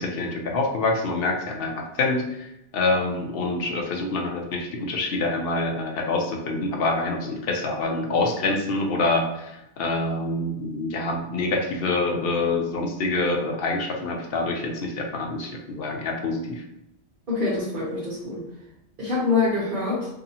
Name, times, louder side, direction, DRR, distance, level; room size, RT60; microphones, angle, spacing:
voice 1, 0.0-16.6, left 2 dB, 65° left, 1 dB, 0.7 m, -26 dB
voice 2, 17.3-18.4 19.0-20.1, left 3 dB, 50° right, -8 dB, 1.0 m, -25 dB
2.7 x 2.6 x 2.7 m, 0.86 s
omnidirectional pair, 1.2 m